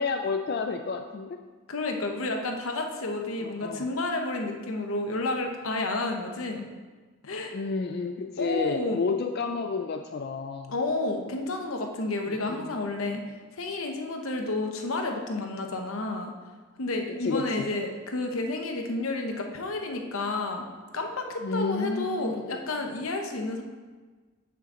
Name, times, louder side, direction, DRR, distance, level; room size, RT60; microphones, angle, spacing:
voice 1, 0.0-1.4 3.4-3.9 7.5-10.7 12.5-12.7 17.2-17.7 21.4-22.6, left 4 dB, 50° left, 5 dB, 0.3 m, -30 dB
voice 2, 1.7-6.6 7.2-7.6 8.4-9.0 10.7-13.2 13.5-16.3 16.8-20.7 20.9-23.6, left 2 dB, 85° left, 4 dB, 0.8 m, -31 dB
7.1 x 5.7 x 3.8 m, 1.4 s
head